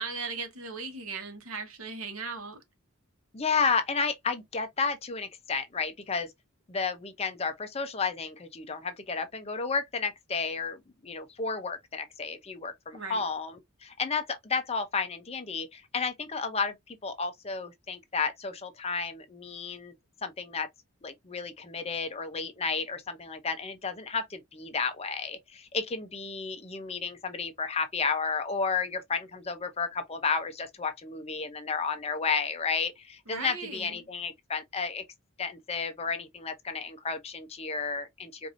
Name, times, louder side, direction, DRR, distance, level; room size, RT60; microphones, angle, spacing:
voice 1, 0.0-2.6 12.9-13.2 33.3-34.0, right 4 dB, 85° right, 1.2 m, -37 dB
voice 2, 3.3-6.3 6.7-19.9 20.2-20.7 21.0-35.0 35.4-38.5, left 5 dB, 30° left, 0.6 m, -32 dB
4.6 x 2.6 x 2.5 m
head